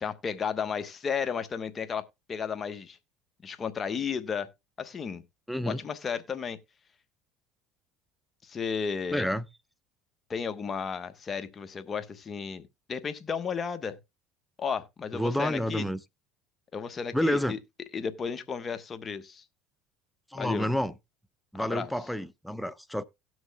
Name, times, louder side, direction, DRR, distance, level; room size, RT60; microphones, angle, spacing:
voice 1, 0.0-3.0 3.4-4.5 4.8-5.2 5.7-6.6 8.4-9.3 10.3-14.0 14.6-15.9 16.7-17.6 17.9-19.4 20.3-20.7 21.6-21.9, left 6 dB, 35° left, 1.1 m, -33 dB
voice 2, 5.5-5.8 9.1-9.5 15.1-16.0 17.1-17.5 20.3-20.9 21.5-23.0, equal, ahead, 0.6 m, -29 dB
17.5 x 6.3 x 2.3 m
supercardioid pair, 85°, 0 cm